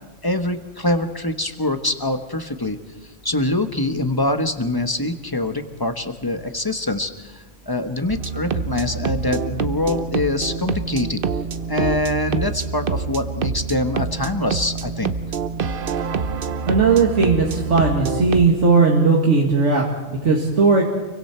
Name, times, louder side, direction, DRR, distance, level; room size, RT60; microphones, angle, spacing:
voice 1, 0.2-2.8 3.0-11.2 11.7-15.2, left 2 dB, 20° left, 7 dB, 1.2 m, -24 dB
sound 1, 8.1-18.5, right 5 dB, 50° right, 1.0 m, -26 dB
voice 2, 16.6-20.8, right 4 dB, 70° right, -1 dB, 2.4 m, -17 dB
29.0 x 23.5 x 4.5 m, 1.2 s
omnidirectional pair, 1.3 m